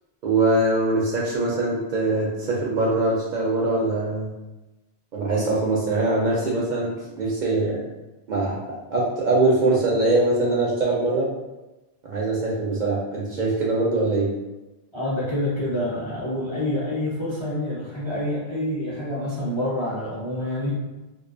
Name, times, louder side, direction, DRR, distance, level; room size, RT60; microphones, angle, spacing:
voice 1, 0.2-4.3 5.1-7.8 8.3-8.6 8.9-11.3 12.0-14.3, right 2 dB, 55° right, -5 dB, 0.6 m, -22 dB
voice 2, 14.9-20.8, left 1 dB, 35° left, -9 dB, 0.5 m, -27 dB
2.4 x 2.2 x 2.4 m, 1.1 s
omnidirectional pair, 1.1 m